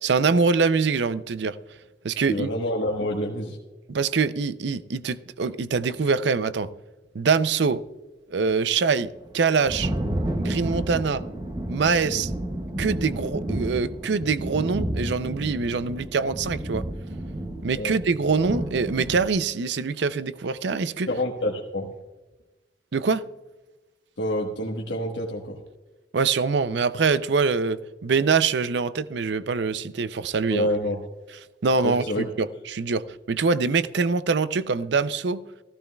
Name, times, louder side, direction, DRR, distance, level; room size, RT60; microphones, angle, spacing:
voice 1, 0.0-1.6 2.0-2.5 3.9-6.7 7.1-7.8 8.3-9.9 10.4-11.2 11.7-12.3 12.8-16.9 17.6-21.1 22.9-23.2 26.1-30.7 31.6-35.4, right 4 dB, 65° right, 0.5 m, -24 dB
voice 2, 2.3-3.6 12.1-12.2 17.7-18.0 21.1-21.9 24.2-25.6 30.5-31.0 31.8-32.3, left 1 dB, 75° left, 1.3 m, -27 dB
Thunder, 9.1-19.3, right 1 dB, 20° right, 0.7 m, -31 dB
15.0 x 15.0 x 2.3 m
head